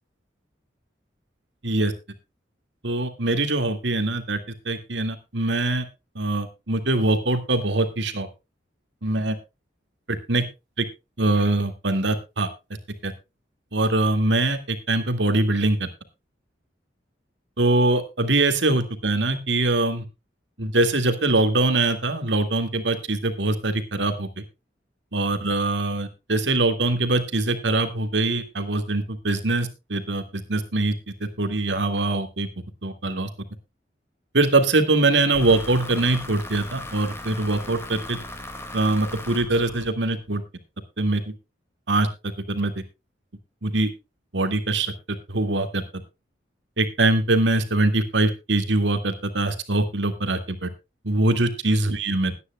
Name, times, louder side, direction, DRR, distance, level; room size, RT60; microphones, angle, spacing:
voice 1, 2.8-4.4 4.7-5.8 6.2-8.3 9.0-9.4 10.1-10.4 10.8-10.9 11.2-12.5 13.0-13.1 13.7-15.9 17.6-20.0 20.6-24.4 25.1-30.9 31.4-32.5 32.8-33.3 34.3-38.2 38.7-40.4 41.0-41.2 41.9-42.1 42.5-42.7 43.6-43.9 44.3-44.9 45.3-45.8 46.8-50.7 51.0-52.3, right 2 dB, 75° right, 8 dB, 2.0 m, -23 dB
sound 1, 35.3-40.3, left 1 dB, 15° left, 2.0 m, -38 dB
21.0 x 9.8 x 2.2 m, 0.26 s
head